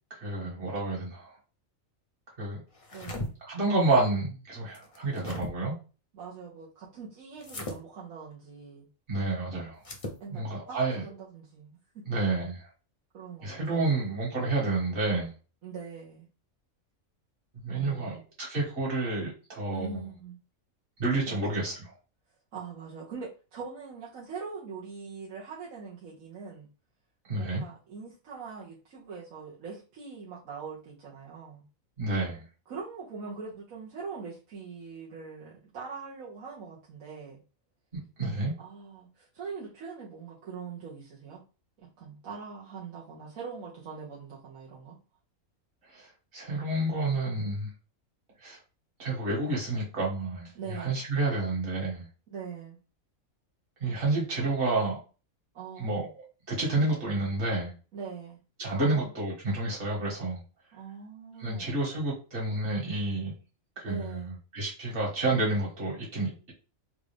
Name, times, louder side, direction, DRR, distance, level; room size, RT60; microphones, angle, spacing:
voice 1, 0.1-1.3 2.4-2.6 3.4-5.7 9.1-9.8 10.3-11.0 12.1-12.7 13.4-15.3 17.6-20.0 21.0-21.9 27.3-27.6 32.0-32.4 37.9-38.5 45.9-47.7 48.4-48.6 49.0-52.1 53.8-55.0 55.8-57.7 58.6-60.4 61.4-63.3 63.8-66.5, right 2 dB, 55° right, -4 dB, 1.9 m, -30 dB
sound 1, 2.7-3.3 4.7-5.5 7.4-7.8 9.8-10.2, left 1 dB, 35° left, 0.7 m, -38 dB
voice 2, 2.9-3.3 6.1-8.9 10.2-12.0 13.1-13.8 15.6-16.3 17.7-18.2 19.7-20.3 21.3-21.7 22.5-26.7 27.4-31.7 32.7-37.4 38.6-41.4 41.8-45.0 50.5-51.0 52.3-52.8 55.5-56.1 57.9-58.4 58.7-59.1 60.7-61.8 63.9-64.4, right 5 dB, 80° right, -5 dB, 1.4 m, -42 dB
3.8 x 2.4 x 3.4 m, 0.34 s
omnidirectional pair, 1.4 m